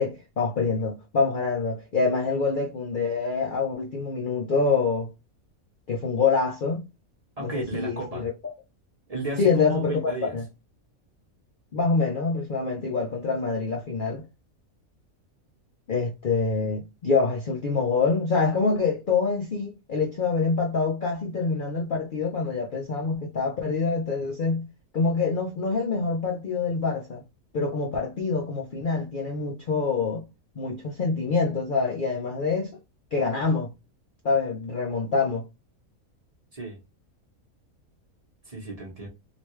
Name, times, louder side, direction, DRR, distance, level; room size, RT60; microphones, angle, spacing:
voice 1, 0.0-5.1 5.9-6.8 7.4-8.3 9.4-10.4 11.7-14.2 15.9-24.7 24.9-27.2 27.5-30.2 30.6-32.8 33.1-33.7 34.2-35.4, left 4 dB, 50° left, 0.6 m, -26 dB
voice 2, 7.4-8.3 9.1-10.4 36.5-36.8 38.4-39.1, right 2 dB, 30° right, 1.0 m, -34 dB
3.3 x 2.5 x 3.1 m
omnidirectional pair, 1.5 m